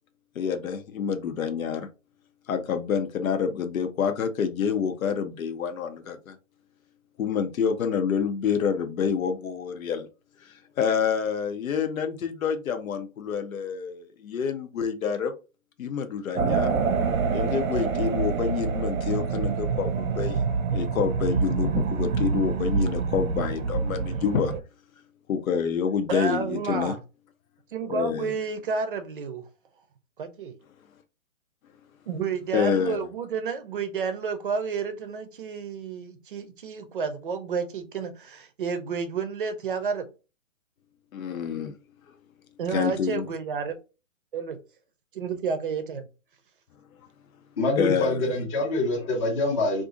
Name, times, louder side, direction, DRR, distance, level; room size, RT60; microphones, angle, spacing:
voice 1, 0.4-1.9 2.5-6.4 7.2-10.1 10.4-15.3 15.8-16.8 17.3-20.4 20.7-24.5 25.3-26.9 27.9-28.3 32.5-33.0 41.1-41.7 42.7-43.3 47.8-48.4, left 7 dB, 85° left, 7 dB, 0.7 m, -27 dB
sound 1, 16.4-24.6, right 5 dB, 85° right, 0.7 m, -26 dB
voice 2, 26.1-27.0 27.7-29.5 30.2-30.6 32.1-40.1 42.6-43.8 44.3-44.6 45.1-46.1, right 5 dB, 40° right, 9 dB, 0.5 m, -30 dB
voice 3, 47.6-49.8, left 2 dB, 25° left, -4 dB, 0.6 m, -25 dB
2.7 x 2.5 x 3.6 m, 0.31 s
hypercardioid pair, 160°, 40 cm